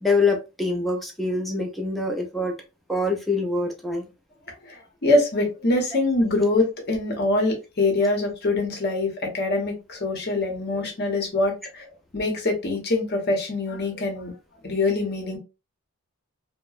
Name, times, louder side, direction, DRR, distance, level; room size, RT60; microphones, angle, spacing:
voice 1, 0.0-2.6 2.9-4.0, left 3 dB, ahead, 2 dB, 0.5 m, -25 dB
voice 2, 4.7-11.9 12.1-14.3 14.6-15.4, left 2 dB, 50° left, 2 dB, 0.9 m, -24 dB
2.9 x 2.1 x 2.4 m, 0.28 s
head